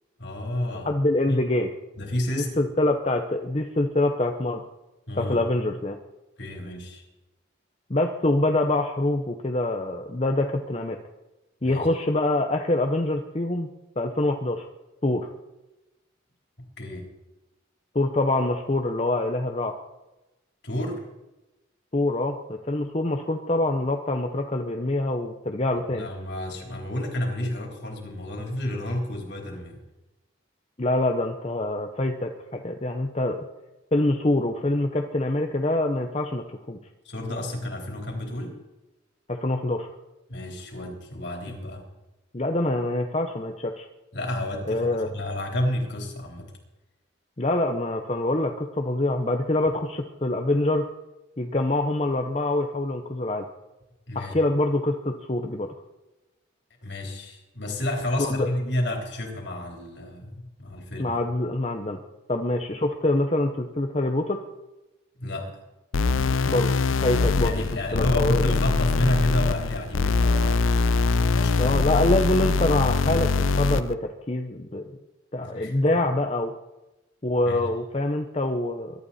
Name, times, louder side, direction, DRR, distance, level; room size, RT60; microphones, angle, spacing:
voice 1, 0.2-0.9 1.3-1.4 2.0-2.6 5.1-5.4 6.4-7.0 11.6-11.9 16.8-17.1 20.6-21.0 25.9-29.8 37.0-38.6 40.3-41.8 44.1-46.5 54.1-54.3 56.8-61.2 65.2-65.5 67.4-71.8 75.4-76.0 77.5-77.6, left 1 dB, 60° left, 1 dB, 3.8 m, -30 dB
voice 2, 0.8-1.7 2.3-4.6 5.2-6.0 7.9-11.0 11.6-13.7 14.0-14.7 15.0-15.3 17.9-19.7 21.9-26.1 30.8-33.4 33.9-36.8 39.3-39.9 42.3-43.9 44.7-45.1 47.4-50.9 51.4-53.4 54.1-55.7 58.2-58.5 61.0-62.0 62.3-64.4 66.5-66.7 67.0-67.6 67.9-68.4 71.6-73.3 73.6-74.8 75.3-76.5 77.2-79.0, left 2 dB, 30° left, 4 dB, 0.8 m, -25 dB
sound 1, 65.9-73.9, left 4 dB, 85° left, 0.6 m, -23 dB
22.5 x 12.0 x 4.3 m, 1.0 s
head